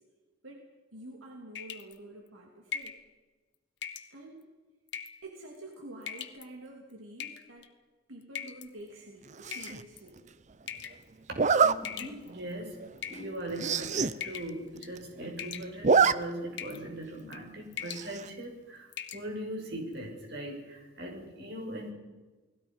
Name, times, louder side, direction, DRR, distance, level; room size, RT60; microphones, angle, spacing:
voice 1, 0.9-3.0 4.1-4.5 5.2-7.7 8.1-10.3, right 1 dB, 85° right, 1 dB, 3.1 m, -48 dB
sound 1, 1.6-2.0 2.7-3.0 3.8-4.1 4.9-5.2 6.0-6.4 7.2-7.7 8.4-8.7 9.5-10.1 10.7-11.0 11.8-12.5 13.0-13.7 14.2-14.6 14.8-15.1 15.4-16.0 16.6-16.8 17.2-17.4 17.7-18.1 18.4-18.5 18.9-19.2, left 8 dB, 60° left, 1.5 m, -40 dB
Zipper (clothing), 9.4-9.8 11.3-11.7 12.3-12.5 12.8-12.9 13.1-13.2 13.5-14.1 14.5-14.6 14.8-15.3 15.6-16.1 16.5-16.6 17.9-18.3, right 5 dB, 35° right, 0.6 m, -25 dB
voice 2, 11.3-12.8 13.1-21.9, right 1 dB, 55° right, 2 dB, 6.3 m, -40 dB
29.5 x 20.0 x 5.6 m, 1.3 s
head